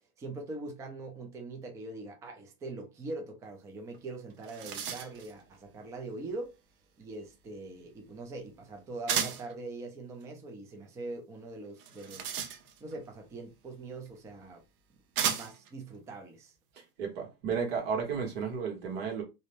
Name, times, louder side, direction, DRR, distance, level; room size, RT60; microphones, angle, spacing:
voice 1, 0.2-6.6 7.0-12.4 12.8-14.6 15.3-16.5, right 2 dB, 10° right, 0.3 m, -42 dB
sound 1, 3.9-4.0 4.3-5.3 9.1-9.5 11.8-13.0 14.1-14.2 15.2-15.7, right 8 dB, 65° right, 0.6 m, -34 dB
voice 2, 16.8-19.2, right 6 dB, 85° right, 1.2 m, -33 dB
2.6 x 2.0 x 3.0 m
supercardioid pair, 145°, 30 cm